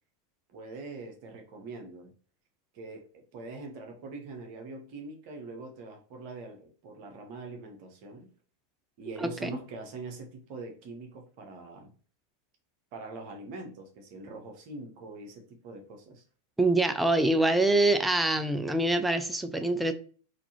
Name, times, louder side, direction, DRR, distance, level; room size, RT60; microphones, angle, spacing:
voice 1, 0.5-2.1 2.7-8.3 9.0-11.9 12.9-16.2, right 3 dB, 45° right, 3 dB, 1.0 m, -43 dB
voice 2, 9.2-9.5 16.6-19.9, right 2 dB, 5° right, 8 dB, 0.4 m, -25 dB
3.9 x 2.7 x 2.8 m, 0.42 s
figure-of-eight pair, 90°, 0 cm